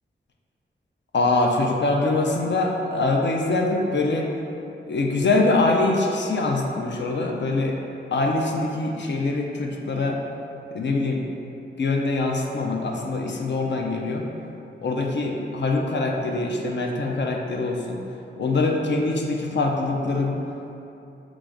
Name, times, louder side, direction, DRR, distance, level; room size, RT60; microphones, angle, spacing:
voice 1, 1.1-4.3 4.9-7.8 8.1-10.2 10.7-11.2 11.8-14.2 14.8-18.0 18.4-20.4, left 2 dB, 60° left, 1 dB, 0.5 m, -23 dB
4.6 x 2.4 x 3.8 m, 2.8 s
wide cardioid pair, 75°, 20 cm